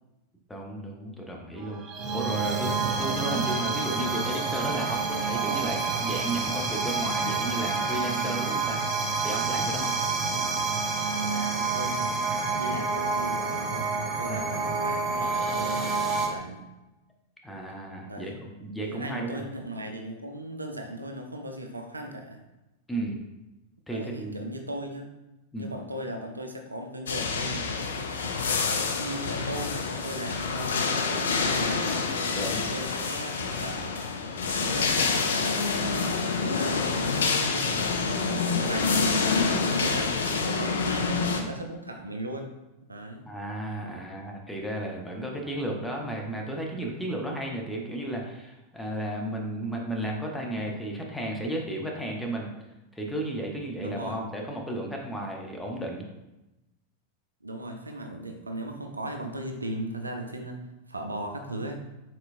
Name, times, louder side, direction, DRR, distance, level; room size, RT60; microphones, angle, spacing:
voice 1, 0.5-1.8 2.1-8.8 9.2-9.9 10.9-11.1 14.3-14.4 17.4-19.4 22.9-23.2 23.9-24.5 25.5-25.7 32.3-32.6 43.3-52.5 52.9-56.0, right 1 dB, 5° left, -1 dB, 0.7 m, -33 dB
sound 1, 1.6-16.3, right 4 dB, 30° right, 0.6 m, -28 dB
voice 2, 10.1-10.5 11.1-12.1 12.4-16.6 18.0-18.4 18.8-22.4 23.9-25.1 25.6-27.7 28.9-32.0 32.6-34.1 34.7-36.1 36.5-39.3 39.7-42.5 42.9-43.3 53.8-54.2 57.4-60.6 60.9-61.8, right 1 dB, 80° right, 4 dB, 0.4 m, -37 dB
sound 2, 27.1-41.4, left 4 dB, 65° left, 0.4 m, -27 dB
4.4 x 3.9 x 2.5 m, 0.99 s
figure-of-eight pair, 90°, 0 cm